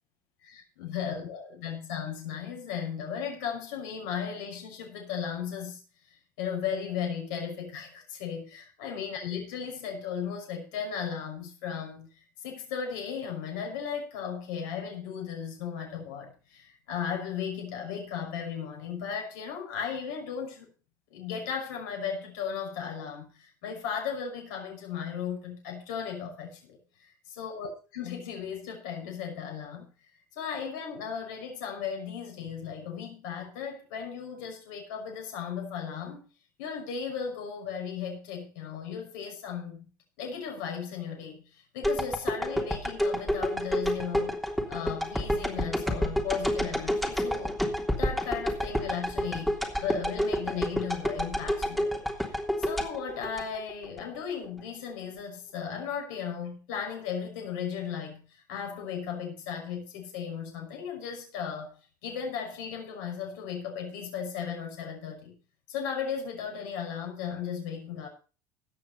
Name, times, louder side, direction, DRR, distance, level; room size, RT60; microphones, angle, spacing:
voice 1, 0.4-5.8 6.1-20.7 21.1-36.2 36.6-39.8 40.2-47.5 48.0-61.7 62.0-65.3 65.7-68.1, left 7 dB, 75° left, 2 dB, 6.0 m, -36 dB
sound 1, 41.8-54.0 54.4-54.5, equal, ahead, 3.4 m, -29 dB
17.5 x 6.6 x 5.5 m, 0.36 s
hypercardioid pair, 80°, 10 cm